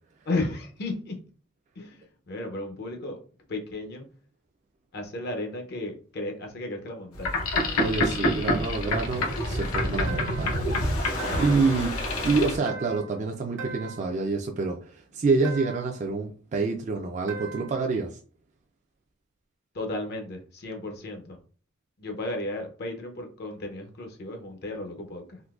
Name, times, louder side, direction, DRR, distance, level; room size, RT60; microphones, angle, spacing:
voice 1, 0.3-1.2 1.8-3.2 3.5-4.0 4.9-7.4 11.2-11.8 19.7-21.4 22.0-25.4, left 2 dB, 50° left, 4 dB, 0.5 m, -34 dB
Boat Water vehicle, 7.1-12.6, left 1 dB, 90° left, 0.8 m, -27 dB
voice 2, 7.8-10.7 11.4-11.9 12.2-18.1, right 4 dB, 35° right, 2 dB, 0.3 m, -27 dB
sound 1, 10.1-10.6 11.2-11.7 12.7-13.2 13.6-14.1 15.4-16.0 17.3-17.8, right 4 dB, 60° right, 0.8 m, -39 dB
3.7 x 2.6 x 2.3 m, 0.40 s
head